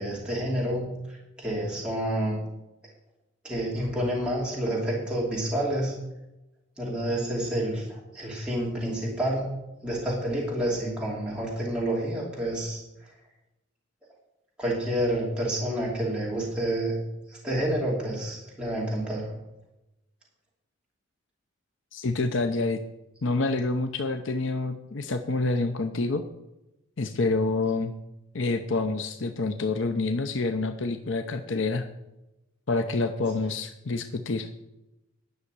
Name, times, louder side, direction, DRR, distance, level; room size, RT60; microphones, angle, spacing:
voice 1, 0.0-2.4 3.4-5.9 6.8-9.5 9.8-12.8 14.6-17.0 17.3-19.3, right 1 dB, 5° right, -5 dB, 2.7 m, -29 dB
voice 2, 21.9-22.8 23.2-26.2 27.0-27.9 28.3-31.9 32.7-34.5, left 3 dB, 70° left, 7 dB, 0.7 m, -27 dB
11.0 x 6.5 x 8.1 m, 0.94 s
head